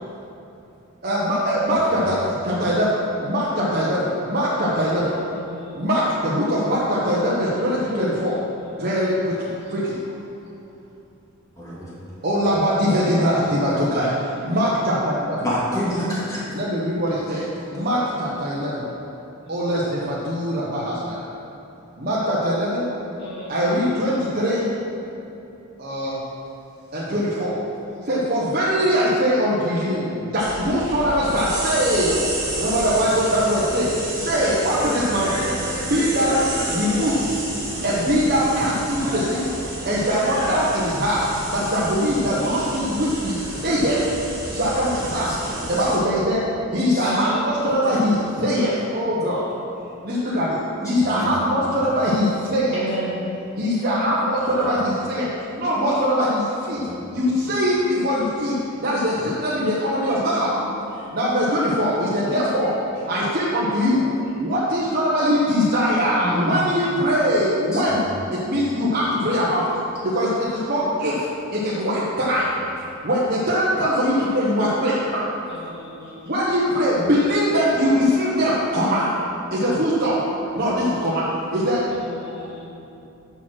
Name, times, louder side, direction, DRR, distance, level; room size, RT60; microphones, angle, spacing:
voice 1, 1.0-2.1 2.4-5.1 5.7-8.4 8.8-9.9 12.2-15.4 16.5-17.4 17.7-18.8 19.5-21.2 22.0-22.8 23.5-24.7 25.8-26.2 26.9-27.6 28.0-32.3 32.5-33.9 34.2-35.5 35.9-37.3 37.8-39.5 39.8-43.4 43.6-44.1 44.5-45.3 45.7-46.4 46.7-49.4 50.0-50.6 50.8-52.8 53.6-55.3 55.5-56.8 57.1-58.5 58.8-60.5 61.1-64.1 64.4-68.0 68.4-69.6 70.0-72.5 73.0-75.0 76.3-79.1 79.5-80.1 80.5-81.2 81.5-81.8 82.4-82.5, equal, 40° right, -8 dB, 1.0 m, -22 dB
voice 2, 11.6-11.9 15.4-16.6 17.3-17.9 44.9-45.9 46.8-47.1 47.8-48.0 50.8-51.4 54.5-54.6 56.7-57.0 66.2-66.5 67.7-68.0 75.1-75.2 79.9-80.0, equal, 15° left, -8 dB, 2.1 m, -30 dB
voice 3, 23.2-23.8 42.3-42.7 47.0-47.4 48.1-48.4 52.7-53.1 75.7-76.2 82.2-82.7, equal, 50° left, -6 dB, 2.0 m, -34 dB
sound 1, 30.4-46.0, right 1 dB, 15° right, 1.9 m, -30 dB
7.0 x 6.0 x 6.2 m, 2.8 s
head